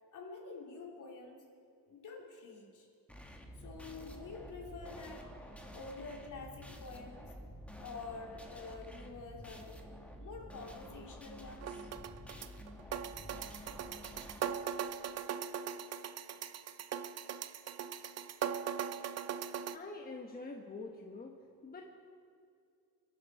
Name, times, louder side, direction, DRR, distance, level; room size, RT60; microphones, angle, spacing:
voice 1, 0.1-1.4 1.8-2.9 3.6-5.2 5.7-7.3 7.8-9.8 10.2-11.9, left 4 dB, 55° left, 0 dB, 3.1 m, -48 dB
sound 1, 3.1-14.4, equal, 5° left, 1.5 m, -50 dB
sound 2, 11.6-19.8, right 8 dB, 45° right, 0.6 m, -40 dB
voice 2, 19.7-21.4 21.6-22.0, left 3 dB, 25° left, 2 dB, 1.2 m, -46 dB
25.0 x 11.5 x 4.7 m, 2.4 s
cardioid pair, 130°, 37 cm